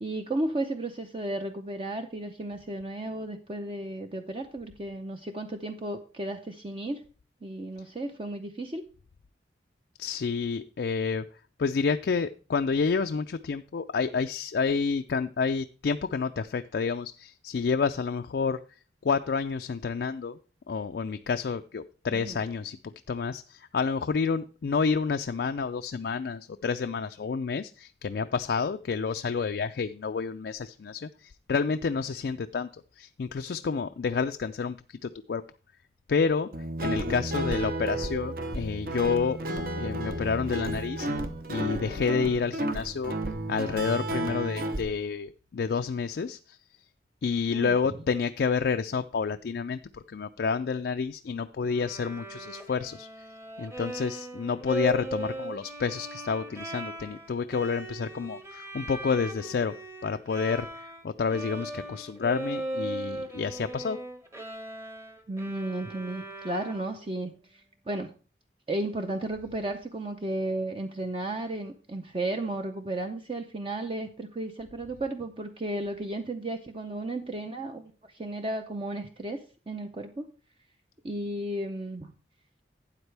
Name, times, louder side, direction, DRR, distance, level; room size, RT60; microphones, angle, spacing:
voice 1, 0.0-7.0 7.4-8.8 22.1-22.4 47.5-47.7 65.3-68.1 68.7-80.3 81.0-82.1, right 1 dB, 30° right, 5 dB, 0.6 m, -34 dB
voice 2, 10.0-11.3 11.6-18.6 19.0-20.4 20.7-35.4 36.1-36.5 36.8-39.4 39.8-41.1 41.5-43.2 43.5-46.6 47.2-53.1 53.6-59.7 60.0-64.0, left 5 dB, 60° left, 7 dB, 0.4 m, -29 dB
Guitar, 36.5-44.8, right 1 dB, 55° right, 0.9 m, -32 dB
Bowed string instrument, 51.7-61.0 61.3-67.1, right 1 dB, 15° right, 1.0 m, -38 dB
12.5 x 8.7 x 3.3 m, 0.36 s
head